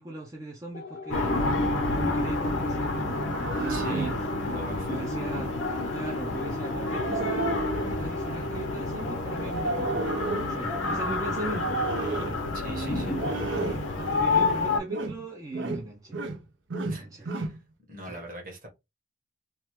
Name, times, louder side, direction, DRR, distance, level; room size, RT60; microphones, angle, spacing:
voice 1, 0.0-1.4 1.8-4.2 4.9-5.6 5.9-7.6 8.0-10.0 10.4-11.8 12.6-13.4 14.0-16.2 16.8-17.5 18.0-18.2, right 2 dB, 15° right, 0.5 m, -38 dB
sound 1, 0.7-15.5, left 4 dB, 45° left, 0.4 m, -43 dB
sound 2, 1.1-14.8, left 3 dB, 90° left, 0.8 m, -29 dB
sound 3, 3.0-4.2 6.6-8.0 9.5-10.6 11.5-12.4 13.1-13.9 14.2-14.6 14.9-15.2 15.5-16.4 16.7-17.6, right 3 dB, 70° right, 0.6 m, -32 dB
voice 2, 3.7-4.2 4.5-5.0 9.8-9.9 12.5-13.2 16.9-17.6 17.9-18.7, equal, 45° right, 1.2 m, -41 dB
3.0 x 2.3 x 3.0 m
head